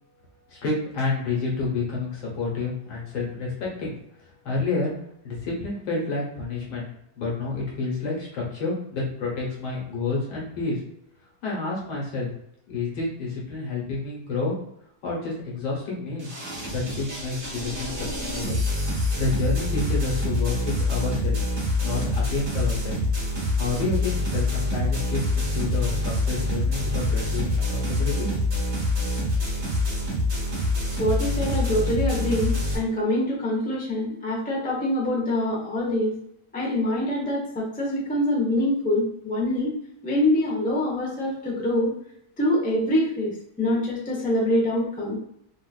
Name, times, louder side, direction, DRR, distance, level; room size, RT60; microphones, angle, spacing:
voice 1, 0.5-4.9 5.2-6.9 7.2-10.8 11.4-12.3 12.7-14.5 15.0-16.3 16.7-18.6 19.1-21.4 21.8-23.0 23.6-28.3, left 3 dB, 75° left, -4 dB, 1.7 m, -29 dB
sound 1, 16.2-32.8, left 1 dB, 45° right, 1.4 m, -26 dB
voice 2, 31.0-36.2 36.5-39.7 40.0-41.9 42.4-45.2, left 1 dB, 10° left, -4 dB, 0.4 m, -25 dB
3.8 x 2.5 x 2.3 m, 0.74 s
omnidirectional pair, 1.8 m